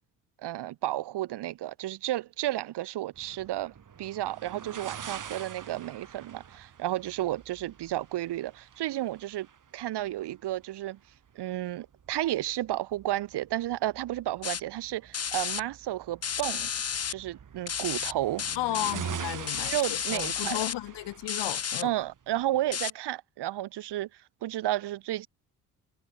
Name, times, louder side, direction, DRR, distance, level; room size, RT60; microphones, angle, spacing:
voice 1, 0.4-9.5 9.7-11.0 11.4-16.7 17.1-18.4 19.6-20.6 21.8-24.1 24.4-25.3, right 14 dB, 65° right, 2.1 m, -32 dB
sound 1, 3.1-22.8, right 7 dB, 45° right, 3.1 m, -45 dB
sound 2, 14.4-14.6 15.1-15.6 16.2-17.1 17.7-18.1 18.4-18.9 19.5-20.7 21.3-21.8 22.7-22.9, left 7 dB, 35° left, 1.3 m, -32 dB
voice 2, 18.6-21.9, left 16 dB, 65° left, 2.3 m, -34 dB
hypercardioid pair, 50°, 44 cm